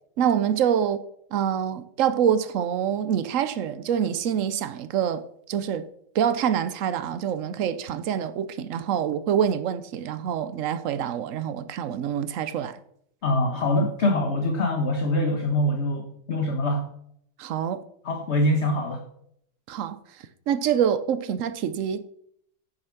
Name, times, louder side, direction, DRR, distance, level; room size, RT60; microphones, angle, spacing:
voice 1, 0.2-1.0 1.3-5.9 6.1-12.7 17.4-17.8 19.7-20.0 20.5-22.0, right 8 dB, 70° right, 0.7 m, -26 dB
voice 2, 13.2-16.9 18.0-19.1, left 1 dB, 45° left, 1.1 m, -24 dB
9.9 x 7.0 x 5.9 m
omnidirectional pair, 2.1 m